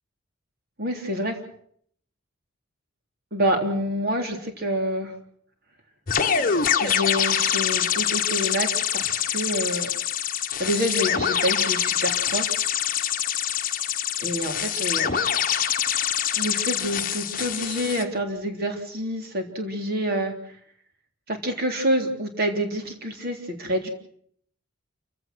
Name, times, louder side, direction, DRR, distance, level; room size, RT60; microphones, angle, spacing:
voice 1, 0.8-1.4 3.3-5.1 6.8-9.9 10.6-12.6 14.2-15.2 16.4-20.3 21.3-23.9, equal, 45° right, 4 dB, 3.5 m, -27 dB
sound 1, 6.1-18.0, left 9 dB, 40° left, 1.2 m, -25 dB
28.5 x 16.0 x 6.2 m, 0.63 s
head